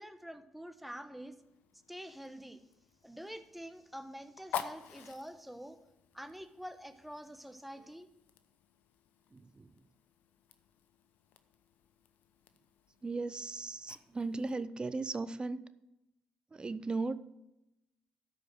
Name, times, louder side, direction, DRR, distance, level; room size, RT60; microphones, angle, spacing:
voice 1, 0.0-1.4 1.9-2.6 3.0-5.8 6.1-8.1, equal, 5° right, 10 dB, 1.1 m, -47 dB
Fire, 1.4-14.7, left 8 dB, 75° left, 0.7 m, -49 dB
voice 2, 9.3-9.7 13.0-15.6 16.5-17.1, right 3 dB, 30° right, 14 dB, 0.7 m, -37 dB
12.5 x 5.3 x 6.1 m, 0.92 s
supercardioid pair, 55°, 3 cm